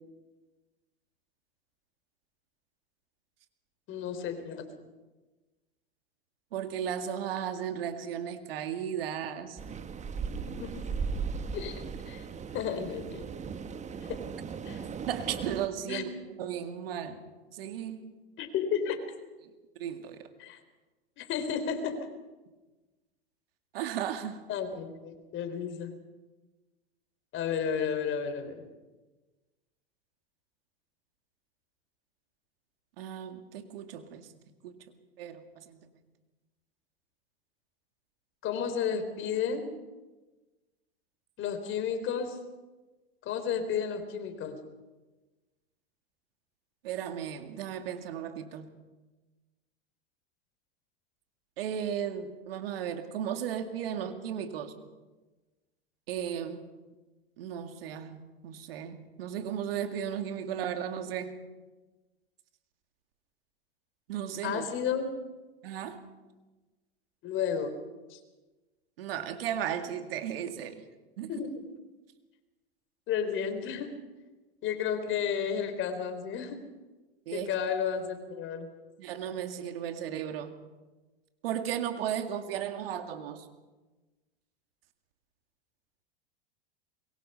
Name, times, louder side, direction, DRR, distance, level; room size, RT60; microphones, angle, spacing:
voice 1, 3.9-4.7 10.5-10.8 11.5-12.2 12.5-13.3 14.1-14.2 14.7-14.9 15.9-16.0 18.4-19.0 20.4-20.6 21.2-22.1 24.5-25.9 27.3-28.7 38.4-39.7 41.4-42.4 43.2-44.6 64.4-65.1 67.2-67.7 68.1-68.2 71.3-71.6 73.1-73.9 74.6-76.7 77.3-78.7, left 7 dB, 40° left, 8 dB, 3.7 m, -32 dB
voice 2, 6.5-9.6 15.1-16.1 16.4-17.2 17.5-18.1 19.8-20.3 23.7-24.4 33.0-34.3 34.6-34.8 35.2-35.8 46.8-48.7 51.6-54.7 56.1-56.6 57.4-61.4 64.1-64.6 65.6-66.0 69.0-70.8 71.2-71.3 77.3-77.6 79.0-80.5 81.4-83.5, right 9 dB, 70° right, 8 dB, 2.2 m, -35 dB
sound 1, 9.6-15.7, right 5 dB, 25° right, 1.4 m, -37 dB
24.0 x 22.0 x 5.6 m, 1.2 s
hypercardioid pair, 100°, 31 cm